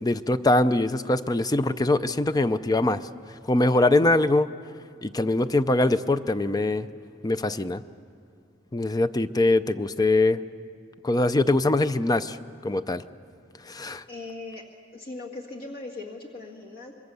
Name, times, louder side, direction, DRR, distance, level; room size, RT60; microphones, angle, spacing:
voice 1, 0.0-3.0 3.5-4.5 5.0-6.9 7.2-7.8 8.7-10.4 11.0-12.4 12.6-13.0 13.7-14.0, left 2 dB, 20° left, 13 dB, 0.5 m, -22 dB
voice 2, 14.1-14.6 14.9-16.9, left 3 dB, 50° left, 0 dB, 1.9 m, -39 dB
25.5 x 22.5 x 6.9 m, 2.3 s
head